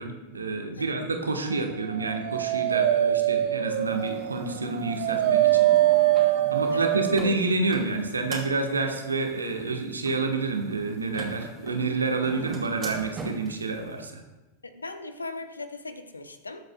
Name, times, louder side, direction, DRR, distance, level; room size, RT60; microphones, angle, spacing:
voice 1, 0.0-5.7 6.5-14.2, right 3 dB, 75° right, 4 dB, 1.3 m, -29 dB
Dog, 1.8-7.4, right 13 dB, 55° right, 0.7 m, -23 dB
sound 1, 3.8-13.6, right 3 dB, 25° right, 2.5 m, -41 dB
voice 2, 14.6-16.6, left 3 dB, 80° left, 10 dB, 0.8 m, -38 dB
20.5 x 8.0 x 2.3 m, 1.1 s
figure-of-eight pair, 90°, 0 cm